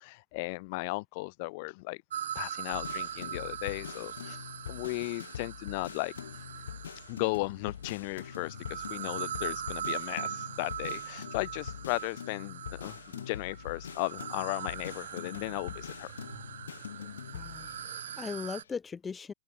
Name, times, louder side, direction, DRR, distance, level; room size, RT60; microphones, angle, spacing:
voice 1, 0.0-2.0 2.3-6.4 6.9-16.1, left 27 dB, 50° left, 0.8 m, -36 dB
sound 1, 2.1-7.3 8.1-18.6, right 10 dB, 65° right, 1.1 m, -41 dB
sound 2, 2.7-18.7, left 8 dB, 65° left, 1.5 m, -44 dB
voice 2, 17.3-19.3, left 5 dB, 15° left, 1.8 m, -39 dB
open air
figure-of-eight pair, 90°, 0 cm